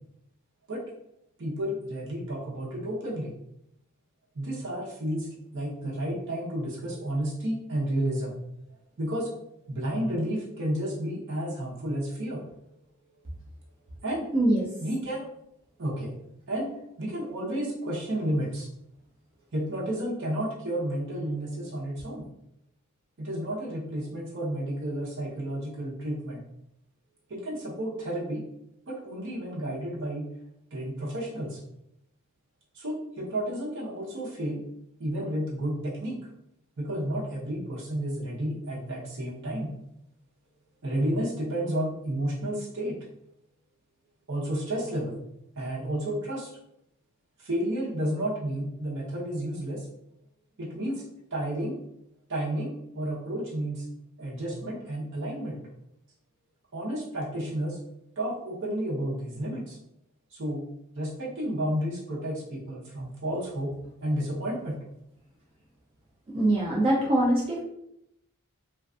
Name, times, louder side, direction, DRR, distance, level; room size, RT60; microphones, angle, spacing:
voice 1, 1.4-3.3 4.3-8.3 9.0-9.3 9.7-12.5 14.0-14.3 14.8-15.3 15.8-16.1 16.5-16.7 17.0-18.7 19.5-22.3 23.2-26.4 27.3-28.4 28.9-30.3 30.7-31.6 32.7-34.6 35.0-36.2 36.8-39.7 40.8-43.0 44.3-45.2 45.6-46.5 47.4-49.9 50.6-51.7 52.3-53.8 54.2-55.6 56.7-57.8 58.2-59.8 60.3-60.6 60.9-63.7 64.0-64.8, right 1 dB, 55° right, -5 dB, 0.8 m, -31 dB
voice 2, 14.3-14.7 66.3-67.6, right 1 dB, 25° right, -3 dB, 0.3 m, -23 dB
2.4 x 2.4 x 2.3 m, 0.78 s
head